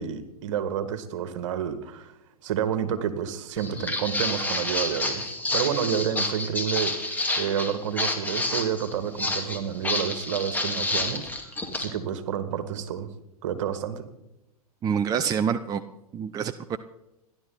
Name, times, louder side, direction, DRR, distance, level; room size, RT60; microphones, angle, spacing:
voice 1, 0.0-2.1 2.4-5.3 5.5-11.3 11.8-13.1 13.4-14.1, right 8 dB, 50° right, 11 dB, 2.0 m, -29 dB
Walk footsteps, 3.6-11.9, left 2 dB, 10° left, 2.4 m, -29 dB
voice 2, 14.8-15.8 16.1-16.8, right 7 dB, 20° right, 10 dB, 0.6 m, -26 dB
29.5 x 11.5 x 4.0 m, 0.92 s
figure-of-eight pair, 100°, 20 cm